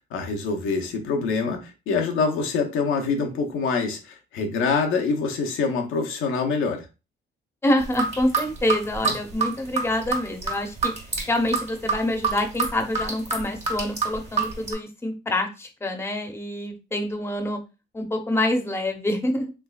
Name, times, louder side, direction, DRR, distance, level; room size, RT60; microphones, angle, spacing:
voice 1, 0.1-6.9 9.0-9.1, left 4 dB, 85° left, 3 dB, 0.7 m, -25 dB
voice 2, 7.6-10.9 11.3-17.6 17.9-19.5, left 1 dB, 10° left, 4 dB, 0.7 m, -26 dB
sound 1, 7.8-14.7, right 4 dB, 35° right, 1.2 m, -27 dB
3.4 x 3.2 x 2.3 m, 0.28 s
cardioid pair, 90°, 20 cm